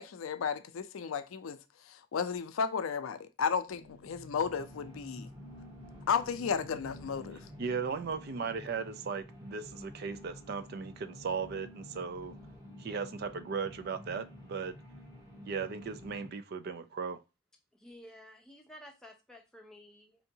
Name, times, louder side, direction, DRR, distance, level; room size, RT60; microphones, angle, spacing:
voice 1, 0.0-1.6 1.9-5.3 6.1-7.4, left 6 dB, 80° left, 0.4 m, -33 dB
sound 1, 3.7-9.0, equal, 75° right, 1.5 m, -56 dB
sound 2, 4.4-16.3, left 1 dB, 15° right, 1.4 m, -50 dB
voice 2, 7.6-12.4 12.8-14.8 15.5-17.2, right 5 dB, 50° right, 0.4 m, -37 dB
voice 3, 17.7-20.3, equal, 5° left, 0.7 m, -53 dB
4.4 x 2.7 x 2.7 m
head